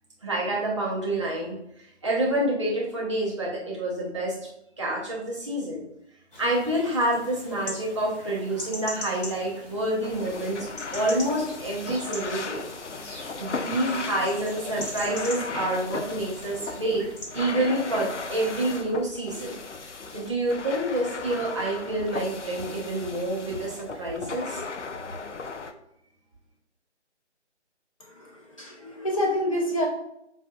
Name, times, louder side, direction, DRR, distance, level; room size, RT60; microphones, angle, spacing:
voice 1, 0.2-4.4 4.8-5.8 6.4-10.7 10.9-12.6 13.0-17.0 17.3-19.6 19.9-24.7, right 1 dB, 25° right, -5 dB, 0.9 m, -28 dB
sound 1, 6.3-17.3, left 1 dB, 50° left, 1.7 m, -41 dB
sound 2, 10.0-25.7, left 4 dB, 75° left, 0.6 m, -37 dB
voice 2, 28.6-29.8, left 1 dB, 30° left, -3 dB, 0.8 m, -27 dB
7.3 x 2.7 x 2.4 m, 0.79 s
figure-of-eight pair, 155°, 36 cm